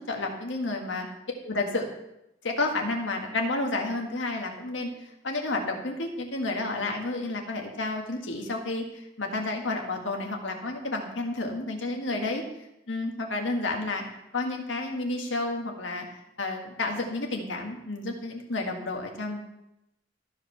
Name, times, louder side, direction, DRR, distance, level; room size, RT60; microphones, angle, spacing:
voice 1, 0.1-1.1 1.4-1.9 2.4-4.9 5.2-12.4 12.9-14.0 14.3-16.1 16.4-19.4, left 2 dB, 80° left, 2 dB, 1.7 m, -30 dB
13.5 x 5.0 x 5.9 m, 0.88 s
head